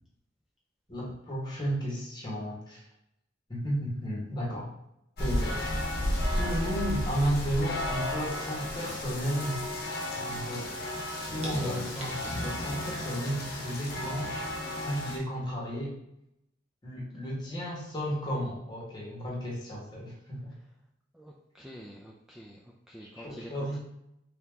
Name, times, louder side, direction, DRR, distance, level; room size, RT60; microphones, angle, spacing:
voice 1, 0.9-2.8 3.5-4.7 5.2-5.8 6.4-9.6 10.3-14.5 14.8-15.9 16.8-20.5 23.0-23.8, equal, 25° left, -5 dB, 1.3 m, -33 dB
sound 1, 5.2-15.2, left 1 dB, 55° left, 0.9 m, -33 dB
sound 2, 8.5-9.5 9.9-10.3 10.8-10.9 11.4-13.1 13.5-13.6, right 1 dB, 35° right, 0.9 m, -45 dB
voice 2, 11.6-12.0 21.1-23.8, equal, 5° right, -3 dB, 0.3 m, -46 dB
3.4 x 2.8 x 3.6 m, 0.81 s
head